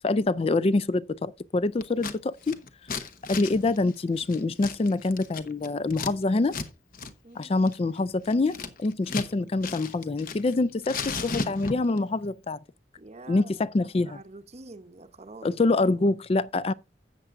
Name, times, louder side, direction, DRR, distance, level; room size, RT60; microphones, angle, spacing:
voice 1, 0.0-2.6 3.3-6.6 7.4-12.6 13.3-14.2 15.4-16.7, left 2 dB, 30° left, 0.4 m, -25 dB
Scissors, 1.8-2.2 2.4-6.1 6.5-6.7 6.9-7.1 7.4-9.3 9.6-10.5 10.8-12.0, left 4 dB, 50° left, 1.0 m, -35 dB
voice 2, 13.0-15.6, right 2 dB, 35° right, 0.8 m, -47 dB
13.0 x 8.0 x 2.5 m
head